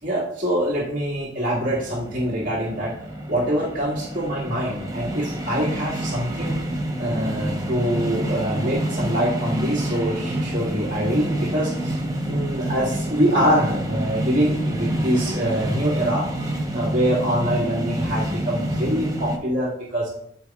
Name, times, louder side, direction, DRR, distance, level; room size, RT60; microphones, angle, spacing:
voice 1, 0.0-2.9 3.3-6.6 7.0-12.0 12.3-16.3 16.7-20.1, equal, 50° right, -8 dB, 2.0 m, -24 dB
sound 1, 1.6-19.4, right 1 dB, 20° right, 0.9 m, -28 dB
12.5 x 4.2 x 2.4 m, 0.73 s
head